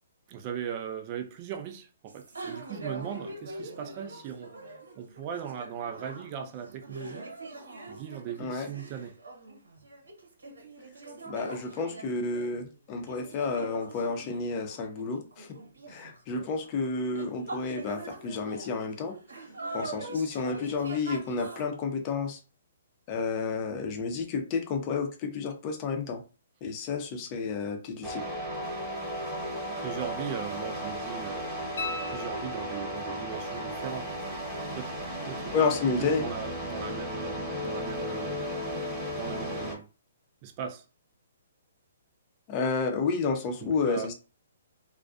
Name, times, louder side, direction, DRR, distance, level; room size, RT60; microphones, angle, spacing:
voice 1, 0.3-4.5 5.0-7.3 7.9-9.1 29.8-31.7 32.1-34.2 34.8-35.7 36.0-38.4 39.2-39.8 40.4-40.8 43.6-44.1, right 8 dB, 35° right, 0.4 m, -38 dB
sound 1, 2.1-21.7, right 2 dB, 85° right, 1.0 m, -43 dB
voice 2, 8.4-8.7 11.3-15.5 15.9-19.1 19.7-22.4 23.1-26.2 26.6-28.2 35.5-36.3 42.5-44.2, left 4 dB, 30° left, 0.6 m, -30 dB
sound 2, 28.0-39.7, equal, 5° right, 1.0 m, -35 dB
sound 3, 31.8-33.1 35.9-36.0, left 3 dB, 70° left, 0.8 m, -38 dB
2.4 x 2.2 x 2.4 m
hypercardioid pair, 135°, 0 cm